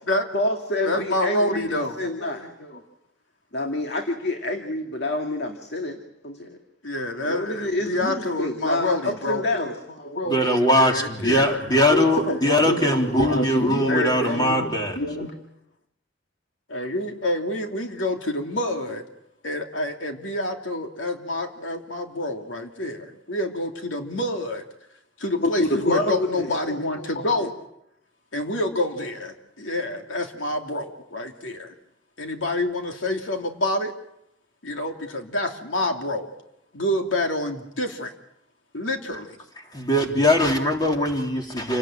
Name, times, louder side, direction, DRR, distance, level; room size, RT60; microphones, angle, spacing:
voice 1, 0.3-2.8 3.5-6.6 7.2-10.9 11.9-15.4 25.4-27.3, left 1 dB, 60° left, 3 dB, 2.2 m, -28 dB
voice 2, 0.8-2.0 6.8-9.4 10.7-11.6 13.6-14.4 16.7-19.0 19.4-24.6 25.2-27.6 28.3-31.7 32.2-33.9 34.6-36.3 36.7-38.1 38.7-39.3, left 1 dB, 85° left, 3 dB, 3.0 m, -27 dB
voice 3, 10.3-15.0 39.7-41.8, left 1 dB, 20° left, 2 dB, 3.5 m, -21 dB
29.0 x 18.5 x 9.0 m, 0.82 s
head